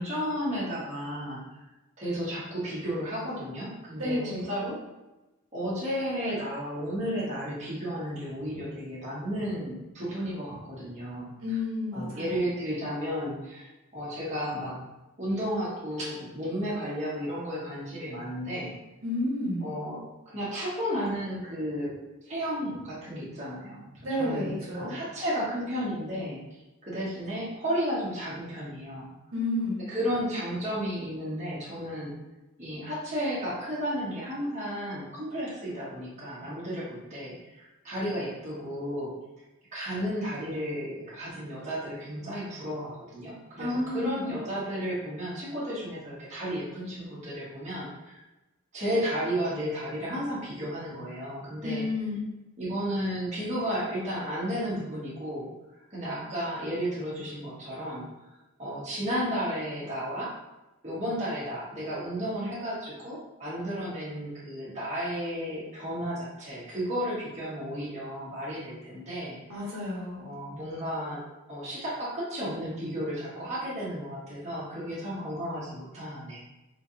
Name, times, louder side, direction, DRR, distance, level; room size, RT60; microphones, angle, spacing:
voice 1, 0.0-1.4 2.0-4.8 5.5-11.6 11.9-14.8 15.2-18.7 19.6-22.0 22.2-26.4 26.8-29.1 29.9-32.1 32.6-39.1 39.7-48.2 48.7-51.8 52.6-55.5 55.9-58.0 58.6-60.3 60.8-69.4 70.2-71.2 71.5-76.4, equal, 30° right, -9 dB, 1.3 m, -33 dB
voice 2, 4.0-4.5 11.4-12.4 19.0-19.7 24.0-24.9 29.3-29.8 43.6-44.2 51.6-52.2 69.5-70.3, left 1 dB, 80° right, -5 dB, 1.2 m, -31 dB
3.8 x 3.3 x 2.8 m, 1.0 s
head